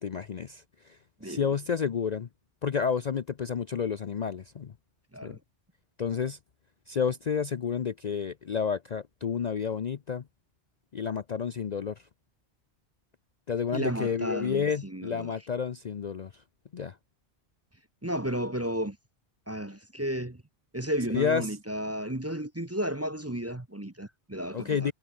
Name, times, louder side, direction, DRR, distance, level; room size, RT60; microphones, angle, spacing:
voice 1, 0.0-2.3 2.6-4.7 5.2-5.4 6.0-6.4 6.9-10.2 10.9-12.0 13.5-16.4 16.7-17.0 21.1-21.6 24.5-24.9, left 6 dB, 45° left, 0.7 m, -30 dB
voice 2, 13.7-15.3 18.0-19.0 19.5-20.4 20.7-24.9, right 1 dB, 15° right, 1.0 m, -33 dB
omnidirectional pair, 1.1 m